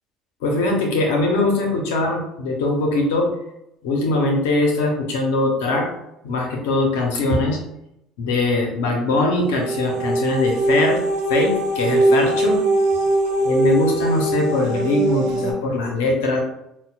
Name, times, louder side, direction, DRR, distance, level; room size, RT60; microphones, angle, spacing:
voice 1, 0.4-3.3 3.8-5.9 6.2-7.6 8.2-11.0 11.3-12.6 13.4-16.4, left 2 dB, 80° left, 1 dB, 0.8 m, -21 dB
sound 1, 9.4-15.5, right 1 dB, 75° right, 0.8 m, -21 dB
5.5 x 2.3 x 2.3 m, 0.81 s
hypercardioid pair, 70°, 0 cm